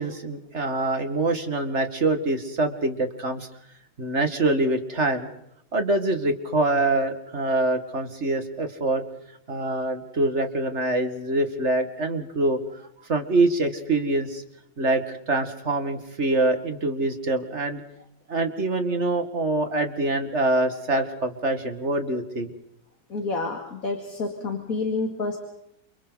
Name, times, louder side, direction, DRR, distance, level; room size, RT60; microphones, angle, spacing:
voice 1, 0.0-3.5 4.0-5.3 5.7-9.0 9.5-12.8 13.1-14.4 14.8-17.8 18.3-22.5, right 2 dB, 40° right, 6 dB, 2.3 m, -25 dB
voice 2, 23.1-25.4, left 3 dB, 50° left, 3 dB, 2.7 m, -29 dB
29.5 x 29.0 x 4.1 m, 0.77 s
omnidirectional pair, 1.9 m